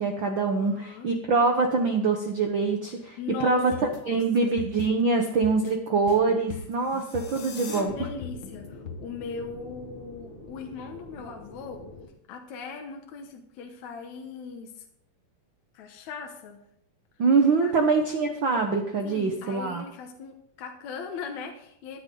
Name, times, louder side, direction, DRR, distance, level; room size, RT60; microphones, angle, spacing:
voice 1, 0.0-7.9 17.2-19.8, right 4 dB, 80° right, 4 dB, 1.1 m, -24 dB
voice 2, 0.6-1.1 3.2-4.2 7.6-11.8 12.3-14.9 15.7-16.6 17.6-17.7 19.0-22.0, left 5 dB, 65° left, 3 dB, 2.3 m, -39 dB
sound 1, 3.7-9.0, left 6 dB, 50° left, 1.7 m, -39 dB
sound 2, 6.7-7.8, left 6 dB, 85° left, 3.6 m, -43 dB
sound 3, 7.8-12.1, left 2 dB, 25° left, 1.2 m, -45 dB
15.0 x 10.5 x 3.8 m, 0.73 s
omnidirectional pair, 3.8 m